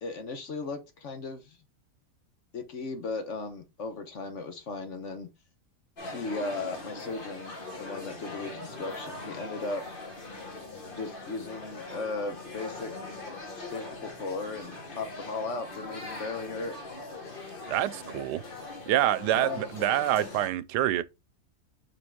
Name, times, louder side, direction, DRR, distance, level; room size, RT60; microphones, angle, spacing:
voice 1, 0.0-1.6 2.5-5.3 6.0-9.8 10.9-12.9 13.6-16.7 19.3-19.6, left 3 dB, 50° left, 1.2 m, -36 dB
sound 1, 6.0-20.5, left 2 dB, 35° left, 1.5 m, -41 dB
voice 2, 17.7-18.4 18.9-21.0, right 13 dB, 90° right, 1.2 m, -26 dB
5.2 x 5.1 x 3.6 m
omnidirectional pair, 1.7 m